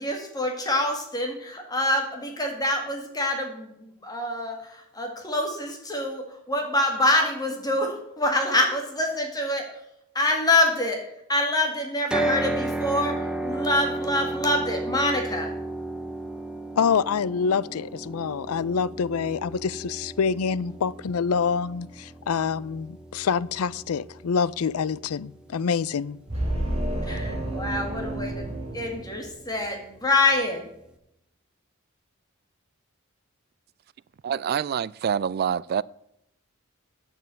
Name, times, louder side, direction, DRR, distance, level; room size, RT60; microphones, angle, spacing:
voice 1, 0.0-9.9 10.1-11.0 11.3-15.5 27.0-30.7, left 1 dB, 20° left, 1.9 m, -26 dB
sound 1, 12.1-26.2, right 2 dB, 5° right, 0.8 m, -34 dB
voice 2, 16.8-26.2, left 6 dB, 85° left, 0.4 m, -26 dB
sound 2, 26.3-29.7, right 1 dB, 30° right, 4.6 m, -30 dB
voice 3, 34.2-35.8, right 8 dB, 45° right, 0.3 m, -26 dB
9.5 x 7.7 x 7.6 m
head